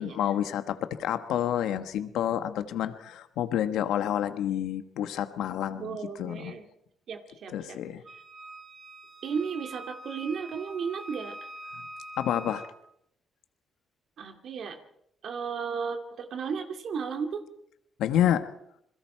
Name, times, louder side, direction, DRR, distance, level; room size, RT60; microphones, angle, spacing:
voice 1, 0.0-6.5 7.5-8.0 12.2-12.7 18.0-18.5, left 11 dB, 85° left, 9 dB, 1.3 m, -29 dB
voice 2, 5.8-6.6 7.1-7.8 9.2-11.4 14.2-14.8 15.2-17.4, right 6 dB, 65° right, 5 dB, 2.6 m, -34 dB
Wind instrument woodwind instrument, 8.0-12.8, right 1 dB, 30° right, 4.9 m, -44 dB
28.5 x 21.5 x 4.5 m, 0.75 s
cardioid pair, 90°, 0 cm